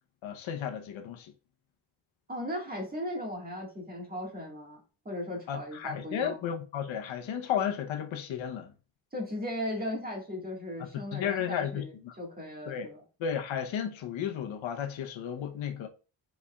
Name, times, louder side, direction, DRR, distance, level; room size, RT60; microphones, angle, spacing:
voice 1, 0.2-1.3 5.5-8.7 10.9-12.1 12.7-12.9 13.2-15.9, left 8 dB, 80° left, 0.9 m, -33 dB
voice 2, 2.3-4.8 5.0-6.4 9.1-13.0, left 1 dB, 20° right, 1.7 m, -37 dB
5.4 x 4.2 x 2.3 m
wide cardioid pair, 160°, 46 cm